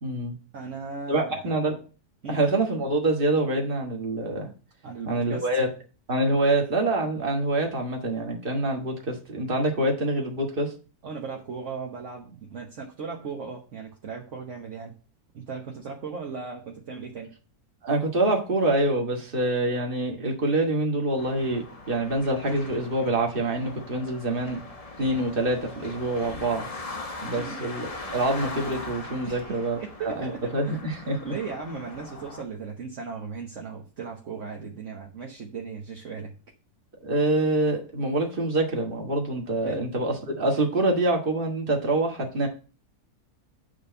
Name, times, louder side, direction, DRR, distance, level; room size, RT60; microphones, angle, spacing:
voice 1, 0.0-0.3 1.1-1.8 2.3-4.5 5.1-5.7 6.1-10.7 17.8-24.6 25.0-26.7 27.2-29.8 30.1-31.2 37.0-42.5, right 2 dB, 35° right, 1 dB, 1.9 m, -26 dB
voice 2, 0.5-1.5 2.2-2.4 4.8-5.5 11.0-14.9 15.3-17.3 27.4-27.7 29.2-30.8 31.2-36.3 39.6-39.8, right 5 dB, 55° right, 0 dB, 1.4 m, -37 dB
sound 1, 21.2-32.4, left 2 dB, 30° left, 0.9 m, -40 dB
8.6 x 3.6 x 6.8 m, 0.34 s
omnidirectional pair, 1.6 m